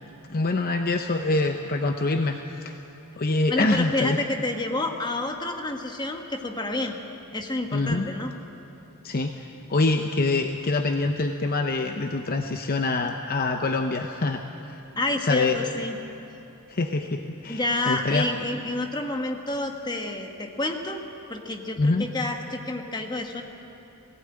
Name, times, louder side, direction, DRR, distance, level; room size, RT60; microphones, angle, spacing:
voice 1, 0.3-2.7 3.2-4.2 7.7-8.1 9.0-14.8 15.2-15.6 16.7-18.3 21.8-22.1, left 3 dB, 45° left, 5 dB, 0.7 m, -25 dB
voice 2, 3.5-7.0 7.3-8.3 15.0-16.0 17.5-21.0 21.3-23.4, left 2 dB, 20° left, 3 dB, 1.4 m, -29 dB
18.5 x 16.0 x 8.9 m, 2.9 s
head